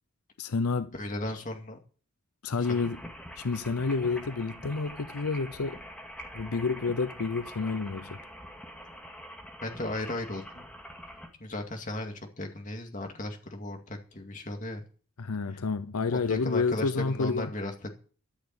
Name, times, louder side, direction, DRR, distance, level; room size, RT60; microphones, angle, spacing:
voice 1, 0.4-0.9 2.4-3.0 3.4-5.8 6.3-8.2 15.2-17.5, left 4 dB, 85° left, 0.7 m, -29 dB
voice 2, 0.9-1.8 2.6-2.9 9.6-10.7 11.4-14.8 16.1-17.9, left 1 dB, 35° left, 2.3 m, -36 dB
sound 1, 2.6-11.3, equal, 5° left, 2.2 m, -45 dB
13.5 x 7.0 x 8.7 m
head